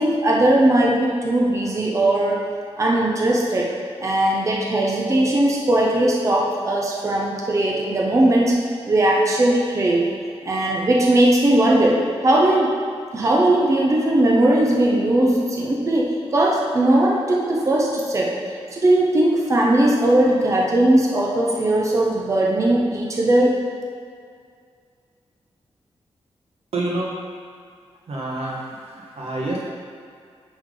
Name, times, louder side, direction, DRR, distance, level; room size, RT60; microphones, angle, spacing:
voice 1, 0.0-2.4 2.8-3.7 4.0-8.5 8.9-10.1 10.4-12.7 13.1-18.3 18.7-23.6, right 1 dB, 30° right, -3 dB, 0.7 m, -19 dB
voice 2, 26.7-27.1 28.1-29.6, right 2 dB, 65° right, -3 dB, 1.2 m, -27 dB
10.0 x 3.5 x 3.7 m, 2.2 s
wide cardioid pair, 180°, 11 cm